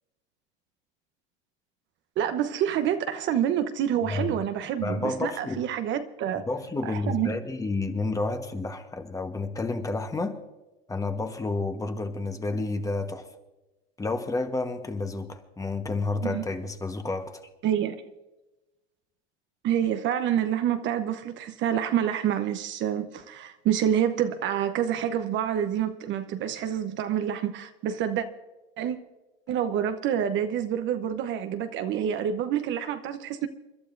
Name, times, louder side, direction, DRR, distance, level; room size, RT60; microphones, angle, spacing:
voice 1, 2.2-6.4 6.8-7.4 16.2-16.4 17.6-18.1 19.6-28.3 28.8-29.0 29.5-33.5, right 9 dB, 40° right, 0.9 m, -27 dB
voice 2, 4.8-5.6 6.5-10.4 10.9-13.3 14.0-17.4, left 3 dB, 10° left, 1.2 m, -30 dB
29.0 x 11.5 x 2.6 m
supercardioid pair, 115°, 30 cm